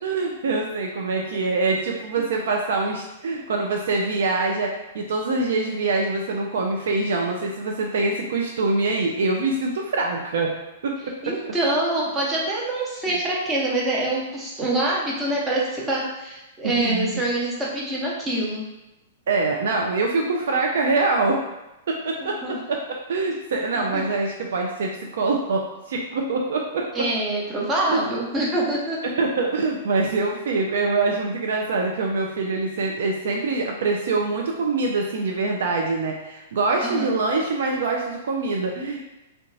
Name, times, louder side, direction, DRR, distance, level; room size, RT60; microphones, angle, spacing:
voice 1, 0.0-10.5 10.8-11.4 16.6-17.1 19.3-21.4 21.9-22.8 23.1-27.1 27.9-28.0 29.2-39.0, right 3 dB, 55° right, 0 dB, 0.3 m, -24 dB
voice 2, 11.2-18.6 22.4-22.6 23.9-24.0 26.9-29.0 36.8-37.1, right 1 dB, 15° right, -4 dB, 0.8 m, -25 dB
3.7 x 2.3 x 2.6 m, 0.98 s
figure-of-eight pair, 105°, 0 cm